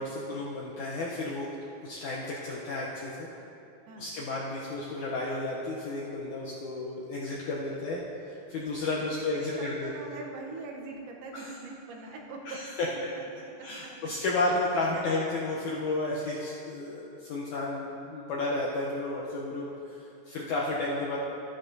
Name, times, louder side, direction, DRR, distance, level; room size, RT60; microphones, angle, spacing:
voice 1, 0.0-1.6 1.8-3.3 4.0-9.9 11.3-11.5 12.5-12.9 13.6-21.2, left 2 dB, 85° left, -5 dB, 1.7 m, -32 dB
voice 2, 9.1-12.6 13.6-13.7 15.0-15.3, right 3 dB, 75° right, 0 dB, 2.7 m, -42 dB
12.5 x 11.0 x 2.7 m, 2.8 s
omnidirectional pair, 4.6 m